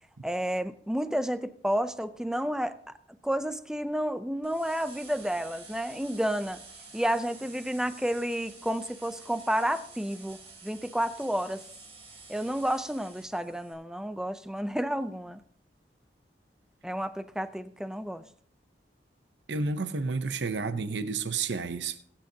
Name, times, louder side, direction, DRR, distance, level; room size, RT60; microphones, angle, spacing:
voice 1, 0.2-2.8 3.2-6.6 6.9-11.6 12.3-15.4 16.8-18.2, equal, 5° right, 0.5 m, -31 dB
sound 1, 4.4-13.7, right 3 dB, 35° right, 3.9 m, -50 dB
voice 2, 19.5-22.1, right 4 dB, 85° right, 0.7 m, -31 dB
22.5 x 8.8 x 2.8 m
head